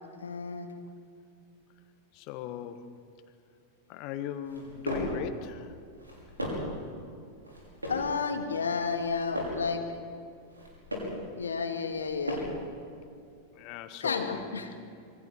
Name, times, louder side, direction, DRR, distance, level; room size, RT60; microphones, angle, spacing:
voice 1, 0.2-0.7 7.9-9.8 11.4-12.4 14.0-14.7, left 5 dB, 70° left, 5 dB, 2.2 m, -31 dB
voice 2, 2.1-2.8 3.9-5.7 13.5-14.5, left 9 dB, 45° left, 10 dB, 1.5 m, -38 dB
sound 1, 4.4-5.2 5.9-6.8 7.4-8.1 8.8-9.7 10.4-11.2 11.9-12.7, equal, 80° right, 5.7 m, -37 dB
27.5 x 23.5 x 4.8 m, 2.4 s
figure-of-eight pair, 90°, 0 cm